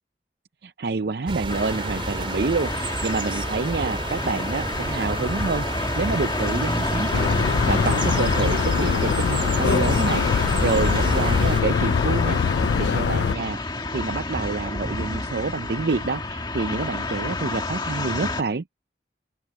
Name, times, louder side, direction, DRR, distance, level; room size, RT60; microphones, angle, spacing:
voice 1, 0.6-12.4 12.8-18.6, right 4 dB, 60° right, 0.6 m, -28 dB
sound 1, 1.3-11.6, right 2 dB, 30° right, 3.6 m, -31 dB
sound 2, 1.5-18.4, left 2 dB, 25° left, 1.8 m, -29 dB
sound 3, 7.1-13.3, left 6 dB, 70° left, 0.3 m, -23 dB
open air
head